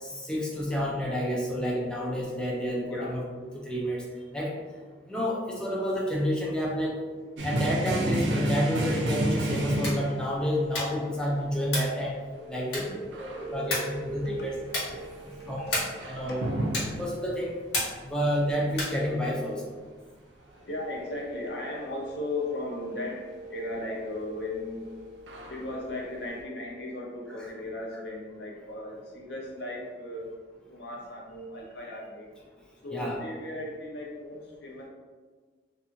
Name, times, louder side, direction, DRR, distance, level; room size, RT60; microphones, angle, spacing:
voice 1, 0.0-3.2 3.5-4.0 4.3-4.6 5.1-7.0 7.4-12.2 12.5-12.8 13.2-14.5 15.5-15.7 16.1-16.4 17.0-17.5 18.0-19.6 32.9-33.2, equal, 5° left, -4 dB, 0.4 m, -29 dB
voice 2, 2.9-3.2 12.0-16.4 20.4-30.3 30.7-32.3 32.8-34.9, left 1 dB, 70° left, -2 dB, 0.6 m, -37 dB
sound 1, 7.4-10.4 13.1-13.8 14.1-17.3 24.6-25.8 26.4-26.5, right 1 dB, 85° right, 0.4 m, -31 dB
sound 2, 9.7-10.1 10.7-11.1 11.7-12.0 12.7-13.1 13.7-14.0 14.7-15.0 15.7-16.1 16.7-17.0 17.7-18.1 18.7-19.0, left 1 dB, 85° left, 1.1 m, -32 dB
2.6 x 2.4 x 2.7 m, 1.4 s
head